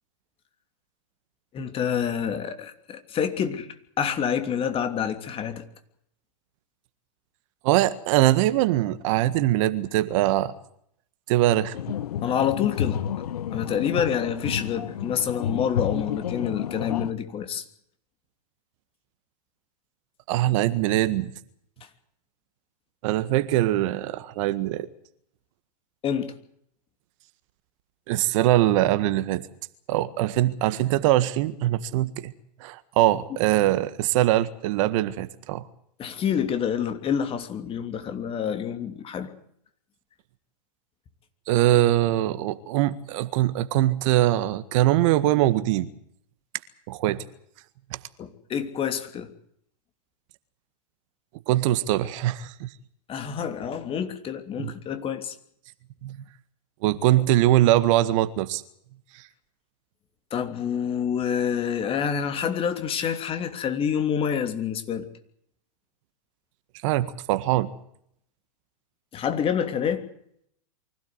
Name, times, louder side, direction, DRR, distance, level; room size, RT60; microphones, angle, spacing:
voice 1, 1.5-3.7 4.0-5.6 12.2-13.0 13.5-17.6 26.0-26.3 36.0-39.3 48.2-49.3 53.1-55.3 60.3-65.1 69.1-70.0, left 8 dB, 30° left, 3.0 m, -27 dB
voice 2, 7.6-10.5 11.3-11.8 20.3-21.3 23.0-24.9 28.1-29.4 29.9-32.3 32.6-35.6 41.5-45.9 46.9-47.2 51.5-52.7 54.6-54.7 56.0-56.2 56.8-58.6 59.1-59.2 66.8-67.7, right 14 dB, 50° right, 1.7 m, -22 dB
sound 1, 11.7-17.1, left 9 dB, 70° left, 1.1 m, -30 dB
24.5 x 16.5 x 8.1 m
hypercardioid pair, 110°, 20 cm